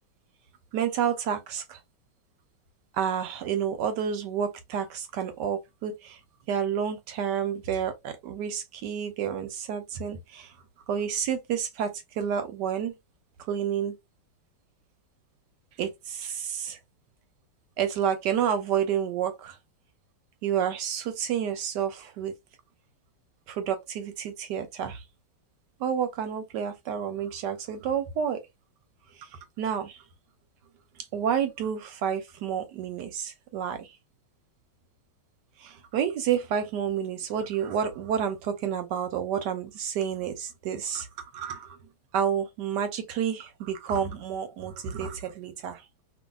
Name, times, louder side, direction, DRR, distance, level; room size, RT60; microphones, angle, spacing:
voice 1, 0.7-1.8 2.9-6.2 6.5-10.5 10.9-12.9 13.4-14.0 15.8-16.8 17.8-19.6 20.4-22.3 23.5-25.0 25.8-28.4 29.1-30.0 31.1-34.0 35.6-41.8 42.1-45.8, right 8 dB, 75° right, 1.1 m, -30 dB
2.7 x 2.6 x 2.2 m
omnidirectional pair, 2.0 m